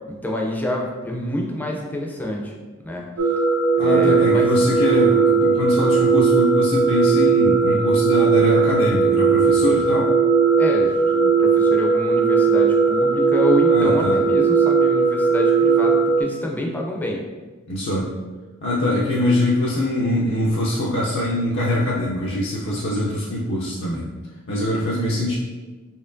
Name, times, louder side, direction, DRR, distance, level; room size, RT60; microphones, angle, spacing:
voice 1, 0.1-2.5 2.8-3.1 3.8-4.5 10.6-17.2, left 1 dB, 10° left, -1 dB, 0.5 m, -27 dB
sound 1, 3.2-16.2, right 5 dB, 70° right, 0.6 m, -18 dB
voice 2, 3.8-10.1 13.7-14.2 17.7-18.1 18.6-24.1 24.5-25.4, left 1 dB, 60° left, -6 dB, 0.5 m, -23 dB
4.4 x 3.0 x 2.5 m, 1.3 s
head